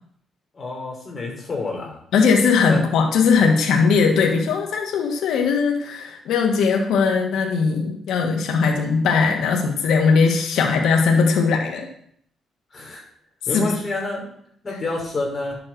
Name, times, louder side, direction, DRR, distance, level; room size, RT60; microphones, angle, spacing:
voice 1, 0.5-2.0 2.7-2.8 12.7-13.0 13.5-14.3 14.6-15.6, left 2 dB, 35° left, -1 dB, 5.5 m, -28 dB
voice 2, 2.1-11.9 13.5-13.7, left 5 dB, 80° left, 2 dB, 1.7 m, -19 dB
10.5 x 7.7 x 6.2 m, 0.65 s
cardioid pair, 90°, 0 cm